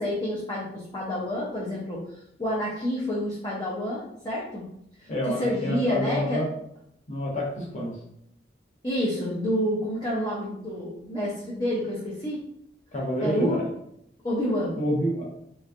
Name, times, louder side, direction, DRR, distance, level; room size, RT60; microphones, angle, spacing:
voice 1, 0.0-2.0 2.4-4.7 5.0-6.4 8.8-12.4 13.2-13.6 14.2-14.8, equal, 25° left, -6 dB, 0.6 m, -28 dB
voice 2, 5.1-6.5 7.1-7.9 12.9-13.7 14.8-15.2, equal, 45° left, -4 dB, 1.1 m, -28 dB
3.3 x 3.1 x 2.5 m, 0.75 s
head